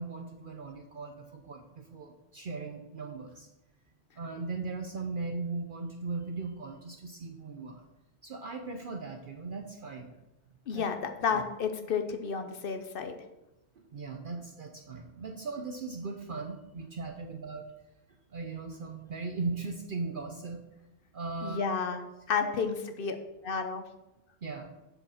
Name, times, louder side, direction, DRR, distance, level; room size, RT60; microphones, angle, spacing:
voice 1, 0.0-3.5 4.2-7.8 8.2-10.1 10.7-10.9 11.3-11.4 13.8-17.7 18.3-20.6 21.1-21.7 22.4-22.5 24.4-24.7, right 4 dB, 55° right, 4 dB, 0.8 m, -38 dB
voice 2, 10.7-13.1 21.4-22.0 22.3-23.2 23.4-23.8, left 6 dB, 55° left, 7 dB, 1.0 m, -31 dB
7.5 x 5.0 x 6.3 m, 0.95 s
omnidirectional pair, 1.2 m